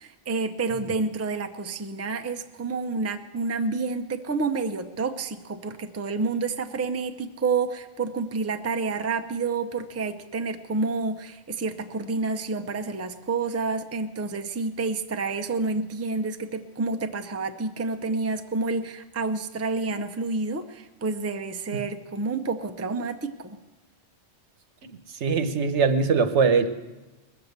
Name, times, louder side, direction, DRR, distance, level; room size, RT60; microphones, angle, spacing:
voice 1, 0.0-23.6, right 4 dB, 20° right, 7 dB, 0.5 m, -29 dB
voice 2, 24.8-26.7, right 5 dB, 80° right, 9 dB, 1.2 m, -22 dB
20.0 x 7.2 x 8.0 m, 1.1 s
omnidirectional pair, 1.2 m